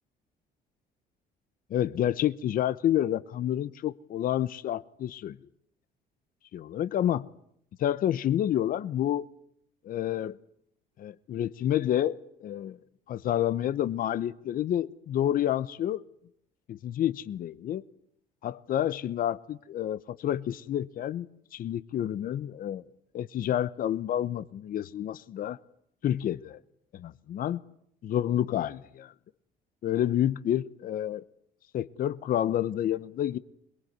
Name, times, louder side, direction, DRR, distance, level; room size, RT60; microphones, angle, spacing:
voice 1, 1.7-5.4 6.5-7.3 7.8-9.3 9.8-10.4 11.0-12.8 13.1-16.0 16.7-17.8 18.4-21.3 21.5-22.8 23.1-25.6 26.0-26.6 26.9-27.6 28.0-29.1 29.8-31.2 31.7-33.4, left 11 dB, 55° left, 0.9 m, -29 dB
22.5 x 22.0 x 9.5 m
cardioid pair, 110°, 17 cm